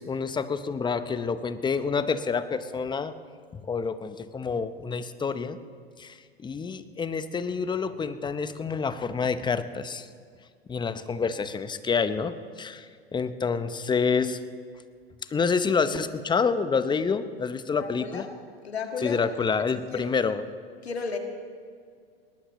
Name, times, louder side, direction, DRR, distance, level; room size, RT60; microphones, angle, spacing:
voice 1, 0.0-3.1 3.5-5.6 6.0-10.1 10.7-14.4 15.3-18.3 19.0-20.4, left 5 dB, 15° left, 12 dB, 0.8 m, -28 dB
voice 2, 17.7-18.3 18.6-19.3 19.9-20.1 20.8-21.2, left 5 dB, 90° left, 4 dB, 1.9 m, -33 dB
20.5 x 19.0 x 3.1 m, 2.2 s
hypercardioid pair, 95°, 31 cm